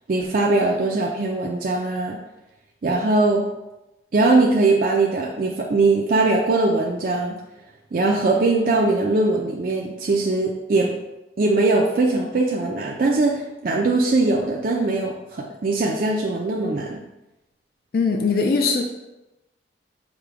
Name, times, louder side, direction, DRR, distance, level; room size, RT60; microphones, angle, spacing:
voice 1, 0.1-2.2 2.8-3.4 4.1-7.4 7.9-10.9 11.4-17.0, right 2 dB, 50° right, -1 dB, 0.4 m, -21 dB
voice 2, 17.9-18.8, left 4 dB, 55° left, 3 dB, 0.4 m, -20 dB
5.0 x 2.2 x 4.6 m, 0.99 s
head